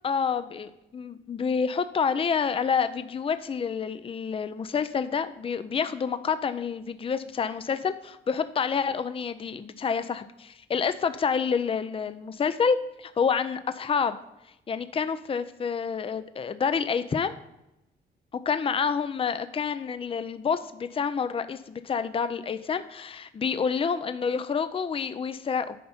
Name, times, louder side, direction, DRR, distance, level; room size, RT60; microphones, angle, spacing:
voice 1, 0.0-14.2 14.7-17.3 18.5-25.8, left 6 dB, 30° left, 11 dB, 0.5 m, -28 dB
9.2 x 5.4 x 4.3 m, 0.89 s
cardioid pair, 90°, 20 cm